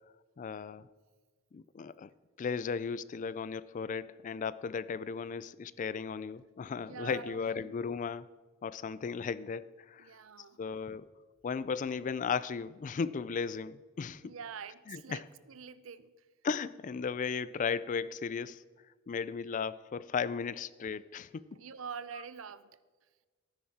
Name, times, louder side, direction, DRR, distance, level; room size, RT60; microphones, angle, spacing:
voice 1, 0.4-0.9 1.5-2.1 2.4-8.3 8.6-10.1 10.6-11.1 11.4-14.3 14.9-15.3 16.4-18.6 19.1-21.5, left 6 dB, 40° left, 17 dB, 0.3 m, -36 dB
voice 2, 6.8-7.7 10.0-10.6 10.9-11.0 14.2-16.3 21.6-22.8, right 6 dB, 70° right, 15 dB, 0.5 m, -46 dB
14.0 x 9.4 x 4.2 m, 1.4 s
head